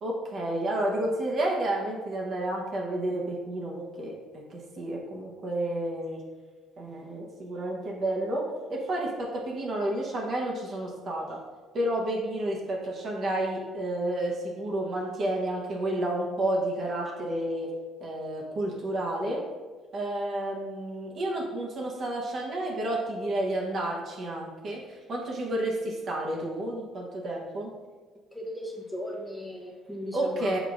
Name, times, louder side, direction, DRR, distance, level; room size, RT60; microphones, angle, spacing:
voice 1, 0.0-4.1 4.5-6.2 6.8-11.4 11.7-17.7 18.0-19.4 19.9-27.7 30.1-30.6, right 1 dB, 55° right, -2 dB, 1.0 m, -30 dB
voice 2, 28.3-30.6, left 1 dB, ahead, -1 dB, 0.9 m, -37 dB
5.1 x 3.8 x 2.5 m, 1.4 s
hypercardioid pair, 60°, 0 cm